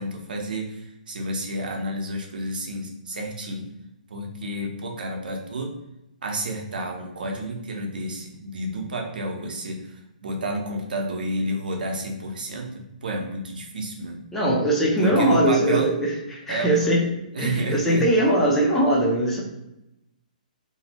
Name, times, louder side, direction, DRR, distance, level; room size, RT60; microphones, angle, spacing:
voice 1, 0.0-3.7 4.1-5.7 6.2-14.2 15.0-15.9 16.5-16.9 17.3-18.1, right 1 dB, 80° right, 2 dB, 0.6 m, -30 dB
voice 2, 14.3-17.0 17.4-19.4, right 1 dB, 5° left, -5 dB, 0.4 m, -21 dB
2.6 x 2.1 x 2.8 m, 0.89 s
hypercardioid pair, 170°, 5 cm